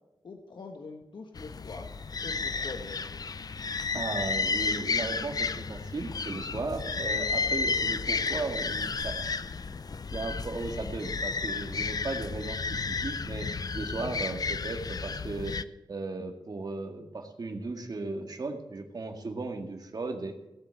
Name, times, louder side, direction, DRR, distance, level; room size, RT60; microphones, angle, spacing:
voice 1, 0.2-1.9 2.2-3.2, left 3 dB, 75° left, 3 dB, 1.4 m, -43 dB
sound 1, 1.4-15.6, left 4 dB, 55° left, 0.5 m, -32 dB
voice 2, 3.9-9.3 10.1-15.6 15.9-20.4, right 3 dB, 55° right, 4 dB, 2.1 m, -36 dB
17.5 x 8.1 x 7.9 m, 0.97 s
wide cardioid pair, 105°, 8 cm